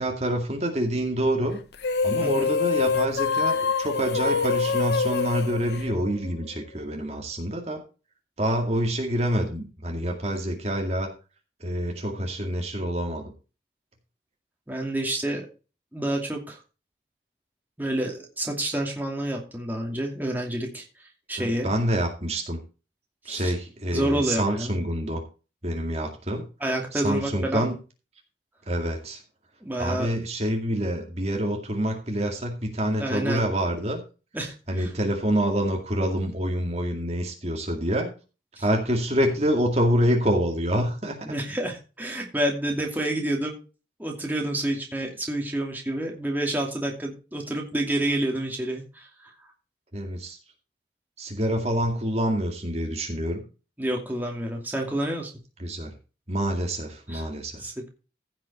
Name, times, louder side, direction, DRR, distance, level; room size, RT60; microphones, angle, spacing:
voice 1, 0.0-1.6 2.0-7.8 8.4-11.1 11.6-13.3 21.4-22.6 23.3-25.2 25.6-26.4 26.9-27.7 28.7-29.2 29.8-34.0 34.7-38.1 38.6-41.2 49.9-50.4 51.2-53.4 55.6-55.9 56.3-57.6, equal, 35° right, 2 dB, 2.2 m, -26 dB
sound 1, 1.7-6.5, left 4 dB, 75° left, 1.0 m, -25 dB
voice 2, 14.7-15.5 15.9-16.6 17.8-20.8 21.3-21.7 23.3-23.5 23.9-24.7 26.6-27.7 29.6-30.1 33.0-33.4 34.3-34.9 38.6-38.7 41.2-43.5 44.0-49.3 53.8-55.3 57.1-57.2 57.6-57.9, right 1 dB, 10° right, 0 dB, 2.6 m, -29 dB
15.5 x 6.1 x 4.2 m, 0.33 s
head